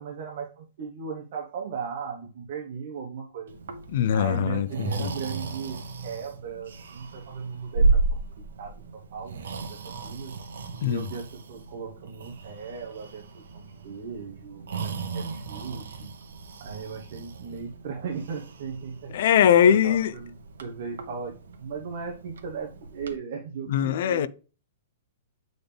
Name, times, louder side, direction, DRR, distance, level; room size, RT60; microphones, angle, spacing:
voice 1, 0.0-3.6 4.1-8.2 8.6-10.4 10.8-16.1 16.6-24.3, right 6 dB, 45° right, 1.1 m, -37 dB
Breathing, 3.5-23.2, right 3 dB, 85° right, 1.1 m, -34 dB
voice 2, 3.9-5.1 10.8-11.0 19.1-20.1 23.7-24.3, left 9 dB, 50° left, 0.4 m, -21 dB
8.5 x 3.9 x 3.4 m
hypercardioid pair, 175°, 0 cm